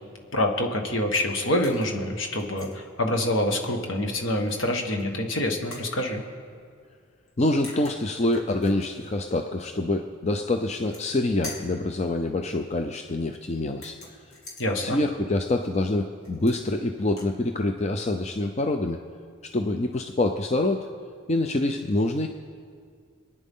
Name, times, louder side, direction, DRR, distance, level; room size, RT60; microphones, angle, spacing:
voice 1, 0.3-6.2 14.6-15.0, left 1 dB, 65° left, 3 dB, 1.5 m, -26 dB
sound 1, 1.6-2.0 2.4-2.8 4.5-5.1 5.7-5.9 7.3-7.4 7.6-8.9 10.6-11.2 11.4-11.8 13.7-14.7 16.2-16.8 17.1-17.3, left 2 dB, 90° left, 2.8 m, -43 dB
voice 2, 7.4-14.0 14.8-19.0 19.4-20.9 21.3-22.3, left 2 dB, 30° left, 5 dB, 0.5 m, -26 dB
26.5 x 9.9 x 3.7 m, 2.1 s
head